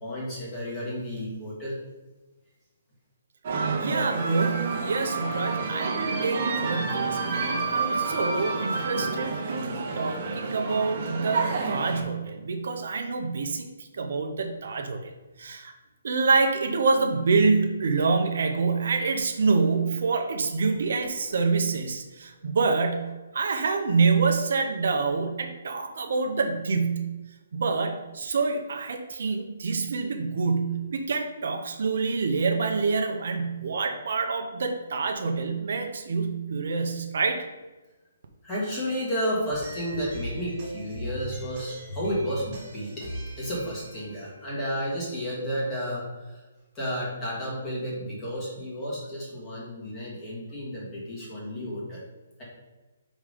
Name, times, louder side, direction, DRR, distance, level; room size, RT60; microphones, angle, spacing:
voice 1, 0.0-1.7 38.4-43.0 43.4-46.1 46.3-46.4 46.8-52.0, equal, 15° left, -7 dB, 1.8 m, -32 dB
sound 1, 3.4-12.0, right 4 dB, 35° right, 1.0 m, -29 dB
voice 2, 3.8-15.1 15.4-15.7 16.0-27.2 27.5-37.5, right 4 dB, 60° right, 4 dB, 0.7 m, -26 dB
sound 2, 39.5-45.3, right 1 dB, 20° right, 1.8 m, -39 dB
5.0 x 3.6 x 5.1 m, 1.2 s
hypercardioid pair, 170°, 0 cm